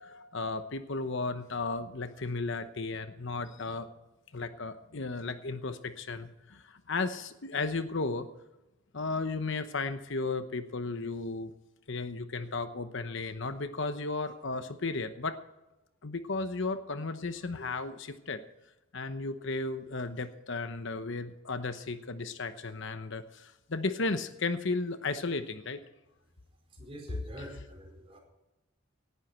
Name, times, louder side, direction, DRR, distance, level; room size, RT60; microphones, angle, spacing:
voice 1, 0.0-3.9 4.3-8.3 8.9-11.5 11.9-15.4 16.0-18.4 18.9-25.8 27.1-27.2, left 3 dB, 60° left, 10 dB, 1.0 m, -34 dB
voice 2, 26.8-28.2, equal, 30° right, 1 dB, 4.7 m, -45 dB
18.0 x 11.0 x 4.4 m, 0.98 s
head